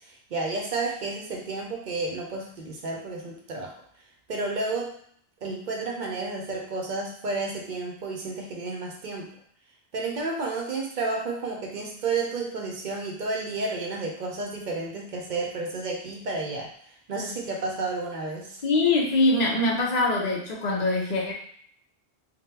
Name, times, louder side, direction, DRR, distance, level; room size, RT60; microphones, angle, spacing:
voice 1, 0.0-3.7 4.3-5.0 5.4-9.3 9.9-16.7 17.1-18.6, right 3 dB, 55° right, 0 dB, 0.6 m, -31 dB
voice 2, 18.6-21.3, left 2 dB, 45° left, -2 dB, 0.8 m, -23 dB
3.4 x 2.2 x 2.8 m, 0.63 s
omnidirectional pair, 1.0 m